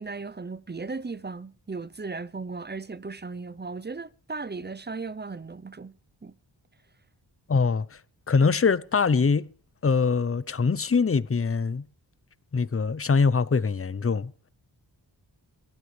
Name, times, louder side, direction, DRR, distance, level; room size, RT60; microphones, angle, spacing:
voice 1, 0.0-5.9 6.2-6.3, right 4 dB, 25° right, 0.7 m, -36 dB
voice 2, 7.5-8.0 8.3-9.5 9.8-11.9 12.5-14.3, left 5 dB, 30° left, 0.7 m, -23 dB
27.5 x 12.5 x 3.3 m
wide cardioid pair, 65°, 45 cm